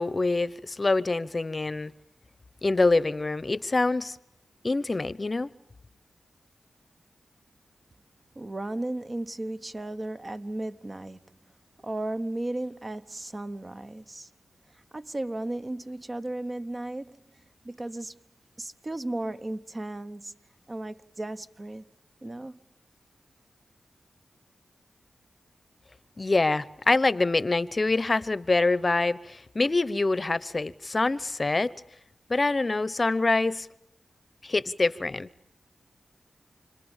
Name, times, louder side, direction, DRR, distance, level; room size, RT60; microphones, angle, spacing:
voice 1, 0.0-1.9 2.6-4.2 4.6-5.5 26.2-31.7 32.3-33.7 34.4-35.3, left 3 dB, 40° left, 0.8 m, -25 dB
voice 2, 8.3-11.4 11.8-14.3 14.9-17.2 17.6-18.2 18.6-20.4 20.7-21.9 22.2-22.6, right 1 dB, 35° right, 1.1 m, -35 dB
29.5 x 21.0 x 7.3 m
cardioid pair, 60°, 0 cm